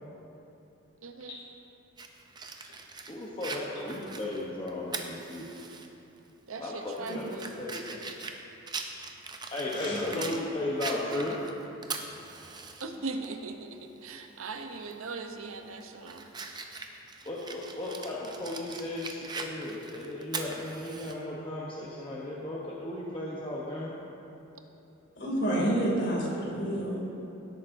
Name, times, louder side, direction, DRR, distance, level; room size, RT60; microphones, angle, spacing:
voice 1, 1.0-1.4 6.5-7.5 12.8-16.3, right 3 dB, 75° right, 6 dB, 0.7 m, -39 dB
Fire, 2.0-5.9 6.2-6.3 6.9-10.4 10.8-12.8 13.2-13.3 14.8-15.1 15.5-21.1, right 4 dB, 20° right, 0.5 m, -41 dB
voice 2, 3.1-5.5 6.6-8.0 9.5-11.4 17.2-23.9, left 1 dB, 25° left, -5 dB, 0.8 m, -35 dB
voice 3, 9.7-10.0 25.2-27.0, right 1 dB, 50° left, -4 dB, 2.5 m, -29 dB
16.5 x 8.7 x 2.6 m, 2.9 s
head